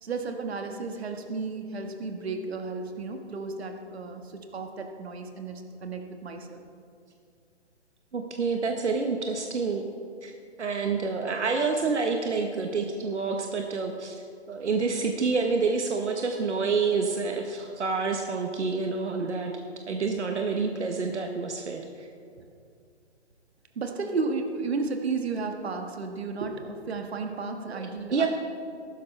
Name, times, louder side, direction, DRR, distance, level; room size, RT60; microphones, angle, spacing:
voice 1, 0.0-6.6 23.7-28.3, right 4 dB, 65° right, 5 dB, 1.6 m, -33 dB
voice 2, 8.1-9.9 10.2-10.3 10.6-19.5 19.9-22.1 28.1-28.3, right 4 dB, 85° right, 3 dB, 1.2 m, -28 dB
14.5 x 12.5 x 3.3 m, 2.4 s
hypercardioid pair, 150°, 34 cm